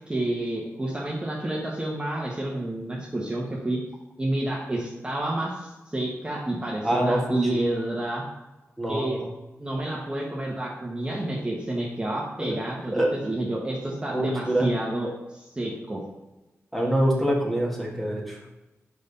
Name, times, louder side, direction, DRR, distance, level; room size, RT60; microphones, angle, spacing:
voice 1, 0.1-3.8 4.2-8.2 8.9-9.2 9.6-16.0, right 1 dB, 20° right, -4 dB, 1.3 m, -29 dB
voice 2, 6.8-7.6 8.8-9.3 12.4-12.6 12.9-13.1 14.1-14.7 16.7-18.4, right 1 dB, 5° left, -3 dB, 1.9 m, -25 dB
5.3 x 4.9 x 4.1 m, 1.0 s
cardioid pair, 70°, 5 cm